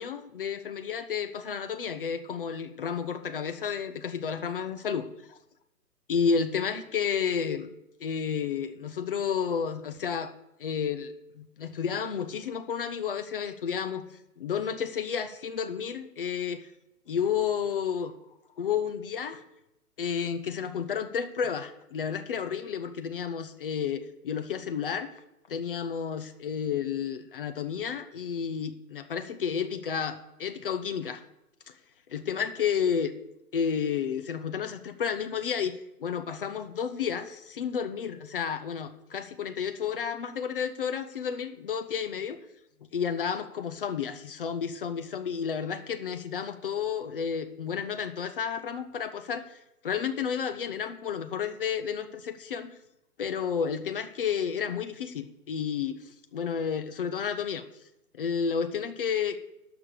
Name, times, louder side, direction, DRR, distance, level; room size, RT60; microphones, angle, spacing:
voice 1, 0.0-5.4 6.1-7.7 8.0-10.3 10.6-14.0 14.4-16.6 17.1-18.1 18.6-19.4 20.0-25.1 25.5-31.2 32.1-33.1 33.5-35.7 36.0-42.4 42.9-49.6 49.8-52.7 53.2-57.6 58.1-59.4, left 7 dB, 35° left, 9 dB, 0.7 m, -31 dB
12.0 x 5.9 x 6.5 m, 0.88 s
figure-of-eight pair, 130°, 47 cm